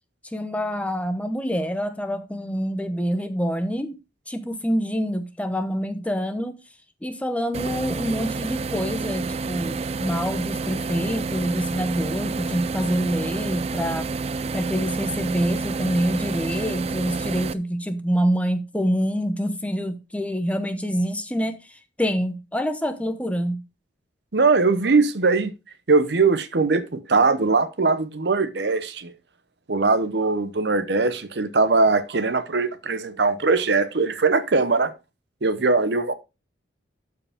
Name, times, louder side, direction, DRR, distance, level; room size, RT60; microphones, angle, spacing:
voice 1, 0.2-4.0 4.3-6.5 7.0-14.1 14.5-23.6, equal, 5° left, 0.8 m, -26 dB
sound 1, 7.5-17.5, right 4 dB, 35° right, 0.3 m, -29 dB
voice 2, 24.3-25.5 25.9-29.1 29.7-34.9 35.4-36.1, right 3 dB, 65° right, 0.8 m, -21 dB
12.5 x 4.8 x 3.5 m
head